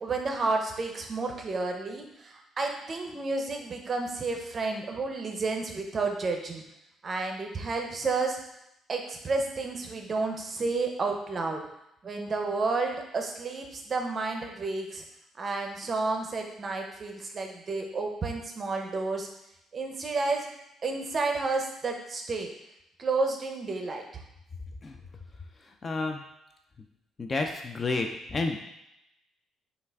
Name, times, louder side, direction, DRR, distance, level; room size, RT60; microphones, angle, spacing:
voice 1, 0.0-6.6 7.0-8.4 8.9-11.7 12.0-15.0 15.4-19.3 19.7-20.5 20.8-22.5 23.0-24.0, right 3 dB, 25° right, 3 dB, 0.5 m, -31 dB
voice 2, 25.8-26.2 27.2-28.6, left 3 dB, 25° left, 4 dB, 0.3 m, -30 dB
5.6 x 2.4 x 3.4 m, 0.83 s
cardioid pair, 170°, 0 cm